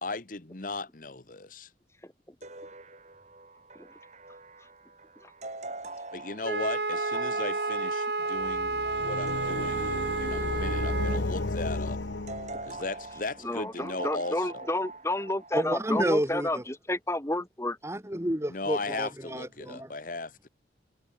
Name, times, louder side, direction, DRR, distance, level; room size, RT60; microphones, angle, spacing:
voice 1, 0.0-1.7 6.1-9.9 10.2-12.0 12.6-14.7 18.5-20.5, left 3 dB, 50° left, 1.5 m, -37 dB
sound 1, 2.4-16.1, right 2 dB, 40° right, 5.1 m, -44 dB
Wind instrument woodwind instrument, 6.4-11.2, right 3 dB, 65° right, 3.7 m, -31 dB
sound 2, 8.4-13.1, left 2 dB, 85° left, 1.1 m, -33 dB
voice 2, 13.4-17.8, left 1 dB, 15° left, 2.5 m, -30 dB
voice 3, 15.5-16.6 17.8-19.9, right 1 dB, 15° right, 2.0 m, -30 dB
head